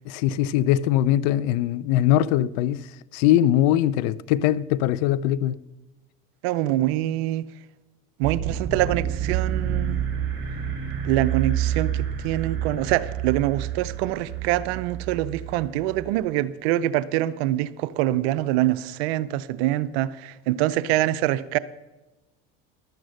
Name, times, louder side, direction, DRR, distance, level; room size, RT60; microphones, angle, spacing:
voice 1, 0.1-5.6, left 12 dB, 70° left, 0.5 m, -21 dB
voice 2, 6.4-7.5 8.2-10.0 11.0-21.6, right 14 dB, 75° right, 0.5 m, -25 dB
sound 1, 8.2-16.3, right 9 dB, 40° right, 3.4 m, -29 dB
12.0 x 7.9 x 6.4 m
hypercardioid pair, 85°, 31 cm